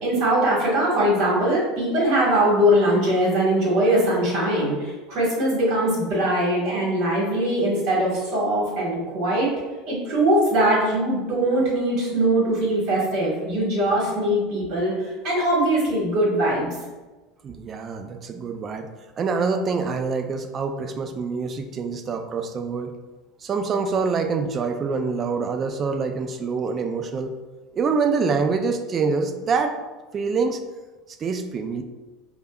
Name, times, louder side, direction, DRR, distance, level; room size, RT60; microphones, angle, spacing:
voice 1, 0.0-9.5 9.9-16.7, right 1 dB, 60° right, -4 dB, 1.5 m, -21 dB
voice 2, 17.4-18.9 19.2-22.9 23.4-27.3 27.7-29.7 30.1-30.6 31.2-31.8, right 4 dB, 35° right, 6 dB, 0.4 m, -25 dB
5.0 x 2.2 x 2.3 m, 1.2 s
hypercardioid pair, 90°, 0 cm